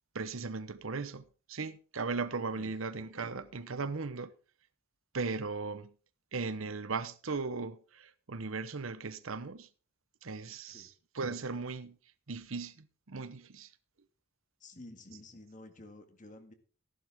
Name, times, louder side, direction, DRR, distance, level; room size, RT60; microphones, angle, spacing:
voice 1, 0.1-4.3 5.1-5.9 6.3-9.7 10.2-10.9 11.1-12.0 12.3-13.7, right 4 dB, 80° right, 0.9 m, -37 dB
voice 2, 14.6-16.5, left 2 dB, 40° left, 1.9 m, -51 dB
15.0 x 11.0 x 3.6 m
head